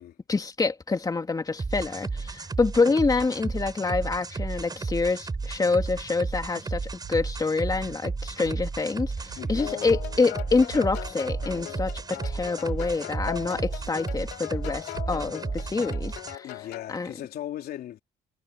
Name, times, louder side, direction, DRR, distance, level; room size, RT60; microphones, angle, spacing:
voice 1, 0.3-16.6 16.9-17.1, left 4 dB, 20° left, 2.8 m, -26 dB
sound 1, 1.6-16.3, right 4 dB, 25° right, 6.8 m, -33 dB
sound 2, 7.0-7.1 7.7-8.0 8.4-8.5 9.0-9.4 9.8-10.2 10.7-10.8 11.3-11.6 12.3-12.8 13.2-13.9 14.5-15.6, right 10 dB, 55° right, 1.6 m, -42 dB
voice 2, 9.4-9.7 16.4-18.0, left 12 dB, 65° left, 3.5 m, -38 dB
sound 3, 9.6-17.0, left 15 dB, 85° left, 2.1 m, -39 dB
cardioid pair, 110°, 17 cm